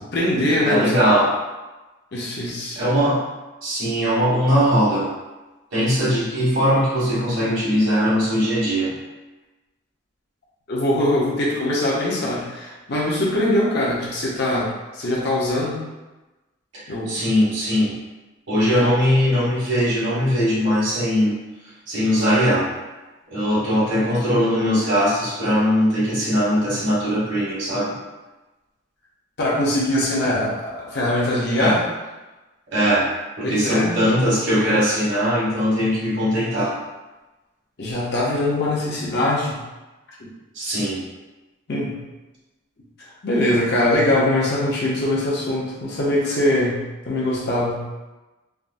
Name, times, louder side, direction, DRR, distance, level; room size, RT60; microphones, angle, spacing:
voice 1, 0.1-1.3 2.1-2.8 10.7-15.8 16.9-17.1 18.7-18.9 29.4-31.8 33.4-34.0 37.8-39.5 40.2-40.3 41.7-42.0 43.2-47.8, left 1 dB, 55° left, -5 dB, 0.7 m, -22 dB
voice 2, 0.6-1.3 2.7-3.2 3.6-5.1 5.7-8.9 17.1-17.9 18.5-21.3 21.9-22.7 23.3-28.0 31.6-31.8 32.7-33.1 33.4-36.7 40.5-41.0, equal, 70° right, -8 dB, 1.5 m, -20 dB
3.5 x 2.1 x 2.5 m, 1.1 s
head